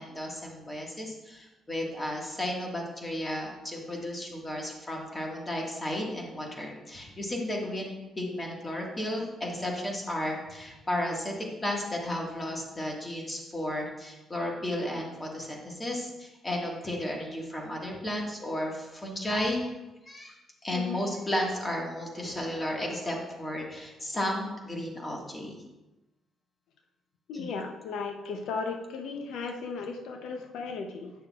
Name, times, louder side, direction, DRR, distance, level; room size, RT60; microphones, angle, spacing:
voice 1, 0.0-19.7 20.0-20.3 20.6-25.6 27.3-27.5, left 1 dB, 25° left, -1 dB, 1.7 m, -33 dB
voice 2, 20.7-21.0 27.3-31.1, left 4 dB, 85° left, 4 dB, 0.7 m, -36 dB
8.8 x 6.7 x 2.4 m, 1.1 s
cardioid pair, 90°, 0 cm